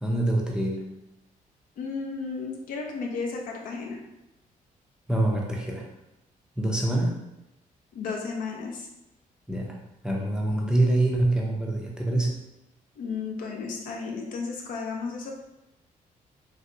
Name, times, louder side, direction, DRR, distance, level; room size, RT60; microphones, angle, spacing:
voice 1, 0.0-0.9 5.1-5.8 6.6-7.2 9.5-9.8 10.0-12.4, right 1 dB, 5° right, -2 dB, 0.4 m, -25 dB
voice 2, 1.8-4.0 7.9-8.9 13.0-15.3, left 4 dB, 80° left, 1 dB, 0.6 m, -33 dB
3.2 x 2.7 x 2.6 m, 0.92 s
cardioid pair, 155°, 14 cm